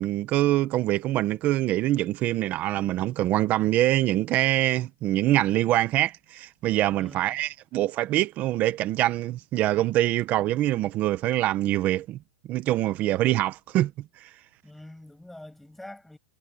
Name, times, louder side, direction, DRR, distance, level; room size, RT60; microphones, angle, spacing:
voice 1, 0.0-12.2 12.5-13.9 14.2-14.3, right 15 dB, 25° right, 1.0 m, -24 dB
voice 2, 6.9-7.4 14.6-16.2, left 1 dB, ahead, 6.6 m, -45 dB
supercardioid pair, 165°, 6 cm